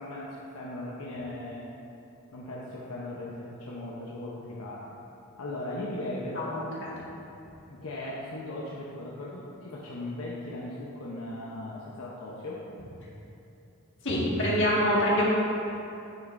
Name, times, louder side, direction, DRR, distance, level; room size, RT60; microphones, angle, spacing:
voice 1, 0.0-1.7 2.3-4.9 5.4-6.7 7.7-12.6, left 1 dB, 80° left, -5 dB, 0.9 m, -38 dB
voice 2, 6.3-6.9 14.0-15.3, equal, 55° left, -6 dB, 1.7 m, -25 dB
10.5 x 6.5 x 2.6 m, 2.8 s
head